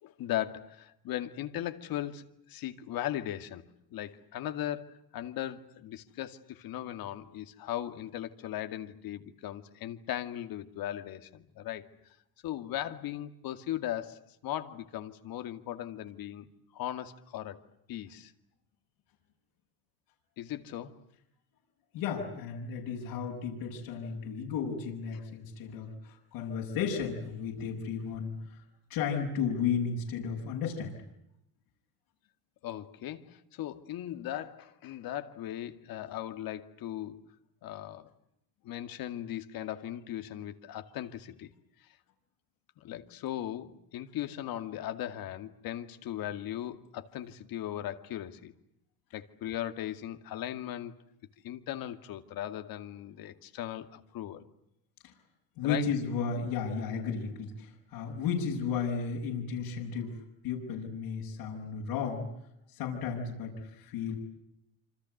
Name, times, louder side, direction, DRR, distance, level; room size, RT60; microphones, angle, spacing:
voice 1, 0.0-3.7 3.9-11.8 12.4-16.5 16.7-17.6 17.9-18.3 20.4-21.0 32.6-37.2 37.6-38.1 38.6-41.5 41.8-41.9 42.8-48.5 49.1-51.0 51.4-54.4 55.6-55.9, left 12 dB, 65° left, 9 dB, 2.3 m, -38 dB
voice 2, 21.9-28.6 28.9-31.0 55.6-60.2 60.4-62.2 62.8-64.1, left 6 dB, 80° left, -2 dB, 7.0 m, -34 dB
27.5 x 26.0 x 8.0 m, 0.78 s
cardioid pair, 110°, 38 cm